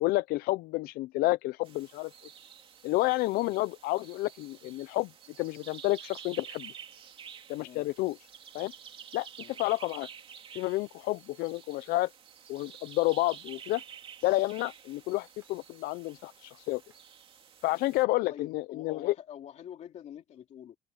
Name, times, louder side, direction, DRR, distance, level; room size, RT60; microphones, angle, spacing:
voice 1, 0.0-2.1 2.8-5.1 5.4-6.7 7.5-8.2 8.5-8.7 9.1-9.3 9.6-10.1 10.5-12.1 12.5-13.8 14.2-16.8 17.6-19.1, left 19 dB, 85° left, 0.5 m, -30 dB
sound 1, 1.6-18.0, right 8 dB, 35° right, 2.7 m, -50 dB
sound 2, 13.8-13.9 15.4-15.6 16.9-17.1 18.4-18.5, right 3 dB, 15° right, 7.5 m, -67 dB
voice 2, 18.3-20.8, left 10 dB, 50° left, 3.0 m, -47 dB
open air
cardioid pair, 155°, 15 cm